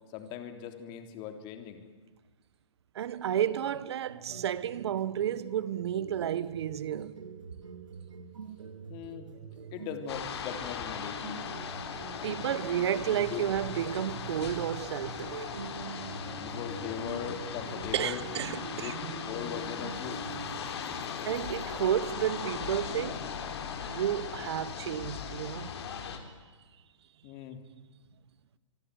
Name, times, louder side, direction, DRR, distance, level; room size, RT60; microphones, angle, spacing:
voice 1, 0.1-1.8 8.9-9.3 9.7-11.4 13.3-13.4 16.4-18.2 18.7-19.0 19.3-20.2 27.2-27.6, left 9 dB, 30° left, 3.1 m, -39 dB
voice 2, 2.9-7.1 12.2-15.5 17.9-19.1 21.2-23.2 23.9-25.8, right 10 dB, 55° right, 1.5 m, -32 dB
sound 1, 4.1-20.7, right 5 dB, 90° right, 2.8 m, -44 dB
riogrande gasstation, 10.1-26.2, left 7 dB, 55° left, 4.1 m, -38 dB
26.0 x 23.5 x 9.5 m
hypercardioid pair, 150°, 16 cm